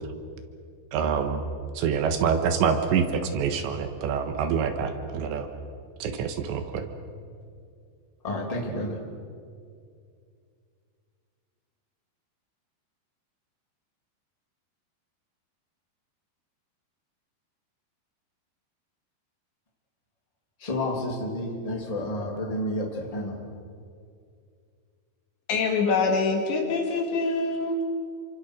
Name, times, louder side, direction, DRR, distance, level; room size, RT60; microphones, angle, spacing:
voice 1, 0.9-1.4 1.7-5.5 6.0-6.9, right 6 dB, 80° right, 7 dB, 3.5 m, -26 dB
voice 2, 8.2-9.0 20.6-23.4, left 1 dB, 10° left, 0 dB, 2.4 m, -30 dB
voice 3, 25.5-27.8, left 3 dB, 70° left, 2 dB, 4.4 m, -25 dB
28.0 x 24.5 x 6.5 m, 2.3 s
omnidirectional pair, 5.3 m